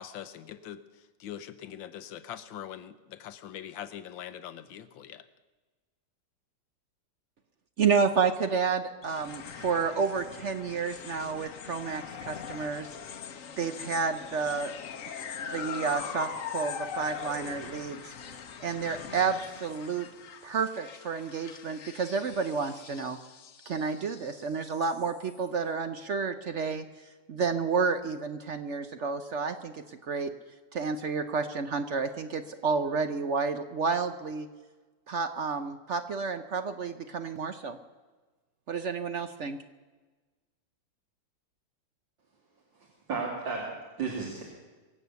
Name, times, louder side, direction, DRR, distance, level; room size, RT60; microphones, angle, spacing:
voice 1, 0.0-5.2, left 10 dB, 90° left, 12 dB, 1.6 m, -43 dB
voice 2, 7.8-13.0 13.6-14.7 15.1-18.2 18.6-20.1 20.4-23.2 23.7-26.8 27.3-30.3 30.7-34.5 35.1-37.8 38.7-39.6, right 5 dB, 60° right, 9 dB, 0.7 m, -30 dB
sound 1, 9.0-25.5, left 7 dB, 55° left, 1.1 m, -42 dB
voice 3, 42.7-44.4, right 4 dB, 80° right, -3 dB, 3.1 m, -34 dB
24.0 x 8.4 x 6.9 m, 1.3 s
omnidirectional pair, 2.0 m